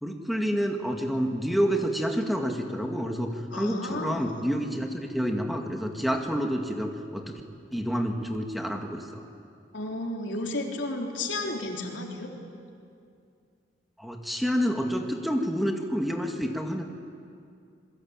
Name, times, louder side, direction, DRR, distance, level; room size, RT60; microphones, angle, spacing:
voice 1, 0.0-7.4 7.7-9.2 14.0-16.8, equal, ahead, 2 dB, 2.0 m, -28 dB
voice 2, 3.5-4.4 9.7-12.3, left 2 dB, 85° left, 1 dB, 3.8 m, -33 dB
27.5 x 22.0 x 9.0 m, 2.4 s
head